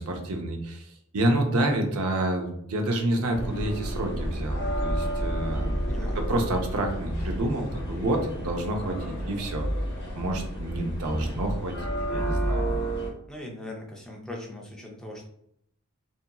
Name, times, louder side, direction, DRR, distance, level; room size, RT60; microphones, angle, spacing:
voice 1, 0.2-0.8 1.1-5.8 6.3-9.7 10.1-11.7 12.1-12.7, right 1 dB, 70° right, 3 dB, 0.6 m, -28 dB
sound 1, 3.3-13.1, right 1 dB, 50° left, 0.8 m, -30 dB
voice 2, 5.9-6.3 11.0-11.4 13.3-15.3, left 1 dB, 5° left, -2 dB, 0.4 m, -40 dB
2.8 x 2.6 x 2.2 m, 0.71 s
head